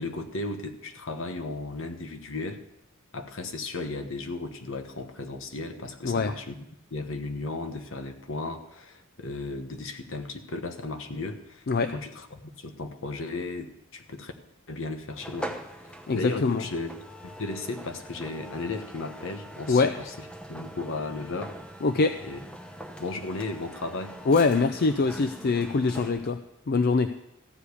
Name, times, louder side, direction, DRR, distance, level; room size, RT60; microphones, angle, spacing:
voice 1, 0.0-2.6 3.1-6.6 6.9-14.3 14.7-15.5 15.8-16.9 17.2-20.1 20.5-21.5 22.2-22.4 23.0-24.1, left 3 dB, 60° left, 7 dB, 1.1 m, -35 dB
sound 1, 15.2-26.4, right 1 dB, 5° left, 0.8 m, -42 dB
voice 2, 16.1-16.6 19.7-19.9 21.8-22.2 24.3-26.4 26.7-27.1, left 4 dB, 45° left, 9 dB, 0.4 m, -23 dB
14.5 x 5.0 x 8.3 m, 0.83 s
head